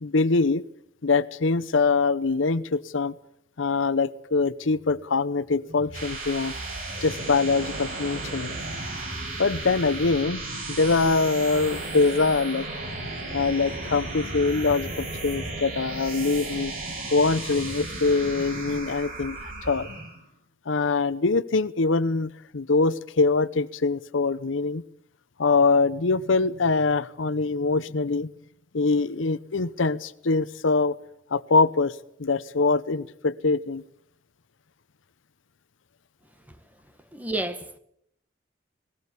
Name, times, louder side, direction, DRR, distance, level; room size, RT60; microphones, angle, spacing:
voice 1, 0.0-0.6 1.0-3.1 3.6-6.5 7.0-8.6 9.4-10.4 10.7-12.7 13.3-16.7 17.1-19.9 20.7-24.8 25.4-28.3 28.7-31.0 31.3-33.8, left 4 dB, 80° left, 0.8 m, -23 dB
sound 1, 5.7-20.2, right 2 dB, 45° right, 7.4 m, -34 dB
voice 2, 37.1-37.8, right 2 dB, 10° right, 1.3 m, -30 dB
19.5 x 18.5 x 8.3 m
head